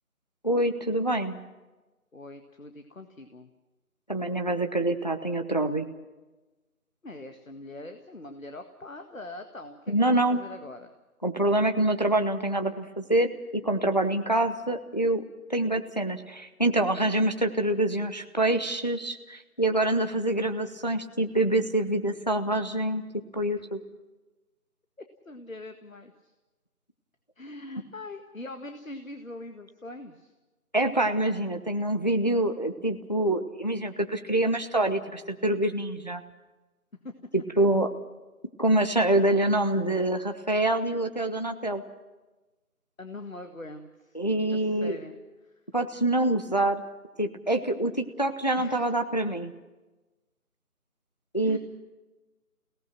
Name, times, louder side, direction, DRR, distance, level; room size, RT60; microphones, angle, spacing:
voice 1, 0.4-1.4 4.1-5.9 9.9-10.4 11.2-15.2 15.5-23.0 23.3-23.8 30.7-36.2 37.3-37.9 38.6-41.8 44.1-45.0 45.7-46.8 47.2-49.5 51.3-51.6, right 1 dB, 30° left, 7 dB, 0.9 m, -26 dB
voice 2, 2.1-3.5 7.0-10.9 23.6-23.7 25.2-26.3 27.4-30.3 37.0-37.1 43.0-44.2 44.5-45.2 45.4-45.5 48.6-48.9 51.4-51.6, left 2 dB, 60° left, 7 dB, 1.9 m, -42 dB
29.0 x 18.0 x 5.9 m, 1.1 s
figure-of-eight pair, 165°, 45 cm